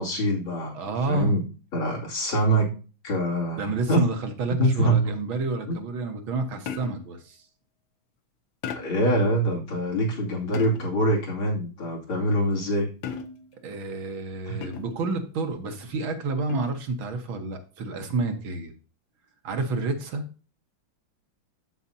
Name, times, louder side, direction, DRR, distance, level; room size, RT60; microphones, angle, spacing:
voice 1, 0.0-0.7 1.1-1.4 1.7-2.7 3.0-4.1 4.6-5.1 5.7-5.8 8.7-12.9 14.5-14.7, right 1 dB, 85° left, -2 dB, 3.4 m, -24 dB
voice 2, 0.7-1.3 3.5-7.4 13.6-18.7 19.4-20.3, right 3 dB, 75° right, 5 dB, 2.1 m, -29 dB
sound 1, 6.7-7.2 8.6-9.1 10.5-11.0 13.0-13.6 14.6-15.1 16.5-16.9, left 6 dB, 70° left, 1.6 m, -37 dB
13.0 x 5.0 x 2.7 m, 0.35 s
omnidirectional pair, 2.2 m